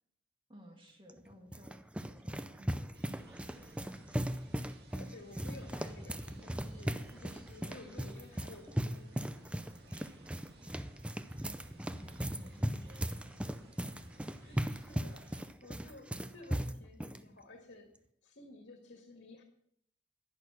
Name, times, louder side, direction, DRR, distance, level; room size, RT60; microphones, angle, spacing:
voice 1, 0.5-4.1 9.6-11.3 11.9-13.7, equal, 30° right, 1 dB, 1.9 m, -58 dB
sound 1, 1.1-17.2, equal, 5° right, 0.5 m, -38 dB
sound 2, 2.9-15.4, right 1 dB, 60° right, 1.9 m, -59 dB
voice 2, 4.9-9.2 14.4-17.9 18.2-19.4, left 2 dB, 90° left, 2 dB, 1.9 m, -53 dB
11.0 x 10.5 x 6.2 m, 0.71 s
head